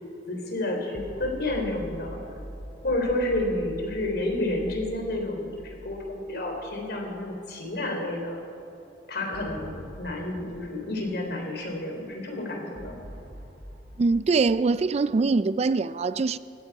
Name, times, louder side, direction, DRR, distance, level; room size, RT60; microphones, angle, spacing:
voice 1, 0.3-2.2 2.8-8.4 9.1-13.0, left 1 dB, 60° left, 3.6 m, -30 dB
sound 1, 0.9-7.3 7.6-7.7 9.3-11.8 12.7-15.5, equal, 65° right, 4.5 m, -44 dB
voice 2, 14.0-16.4, right 4 dB, 35° right, 0.3 m, -23 dB
19.0 x 15.5 x 4.8 m
head